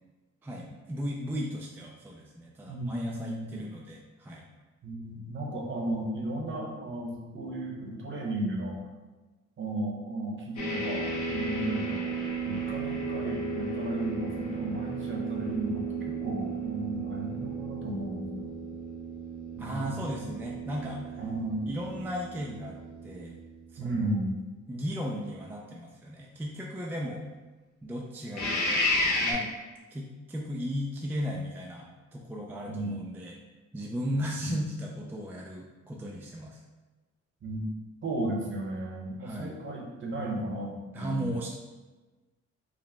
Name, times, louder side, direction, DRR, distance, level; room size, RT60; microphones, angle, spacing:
voice 1, 0.4-4.5 19.6-21.2 21.7-22.8 23.0-23.3 23.7-24.2 24.7-27.2 27.8-29.5 29.9-33.4 33.7-36.6 39.2-39.6 40.9-41.5, equal, 5° right, -1 dB, 0.3 m, -36 dB
voice 2, 2.7-3.7 4.8-8.8 9.6-12.1 12.4-18.5 19.6-20.2 21.2-21.7 23.8-24.4 32.6-33.0 34.4-34.6 37.4-37.7 38.0-41.3, right 1 dB, 40° right, -1 dB, 0.8 m, -34 dB
sound 1, 10.6-23.7 28.3-29.3, right 1 dB, 75° left, 1.1 m, -33 dB
4.9 x 2.0 x 3.3 m, 1.2 s
cardioid pair, 125°, 29 cm